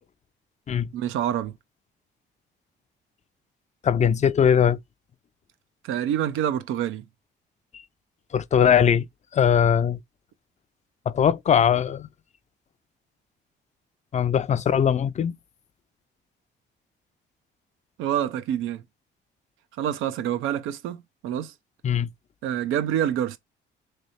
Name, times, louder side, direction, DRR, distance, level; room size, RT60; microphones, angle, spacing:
voice 1, 0.9-1.5 5.8-7.0 18.0-18.8 19.8-21.5 22.4-23.4, right 10 dB, 90° right, 0.6 m, -27 dB
voice 2, 3.8-4.8 8.3-9.1 9.3-10.0 11.1-12.1 14.1-15.3 21.8-22.1, left 8 dB, 35° left, 0.4 m, -20 dB
3.3 x 3.1 x 4.0 m
cardioid pair, 90°, 20 cm